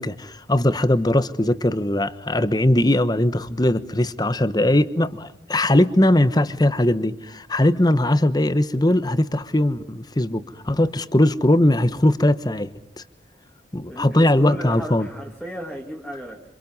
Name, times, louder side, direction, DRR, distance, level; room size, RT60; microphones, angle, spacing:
voice 1, 0.0-12.7 13.7-15.1, left 1 dB, 20° left, 13 dB, 1.1 m, -20 dB
voice 2, 13.9-16.4, equal, ahead, -2 dB, 2.4 m, -34 dB
27.0 x 27.0 x 5.5 m, 0.71 s
head